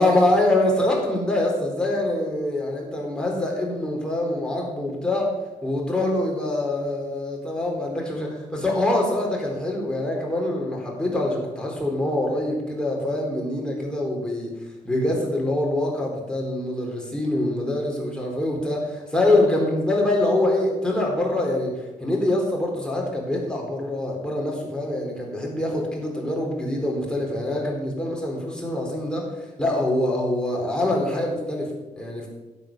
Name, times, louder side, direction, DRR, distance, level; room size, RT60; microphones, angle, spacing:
voice 1, 0.0-5.3 5.6-14.5 14.8-32.3, left 1 dB, 5° left, -2 dB, 4.2 m, -24 dB
11.0 x 8.2 x 7.4 m, 1.1 s
cardioid pair, 100°, 13 cm